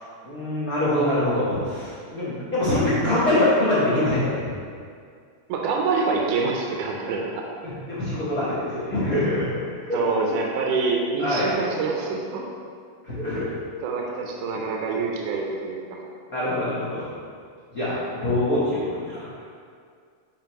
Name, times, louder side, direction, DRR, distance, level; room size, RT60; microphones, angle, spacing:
voice 1, 0.2-4.5 7.6-9.6 9.9-10.0 10.3-10.4 11.2-11.5 13.0-13.5 16.3-17.1 17.7-19.4, left 1 dB, 55° left, -12 dB, 0.9 m, -24 dB
voice 2, 5.5-7.4 9.9-12.4 13.8-16.0, right 4 dB, 80° right, -1 dB, 2.2 m, -26 dB
9.2 x 4.3 x 3.0 m, 2.2 s
omnidirectional pair, 3.8 m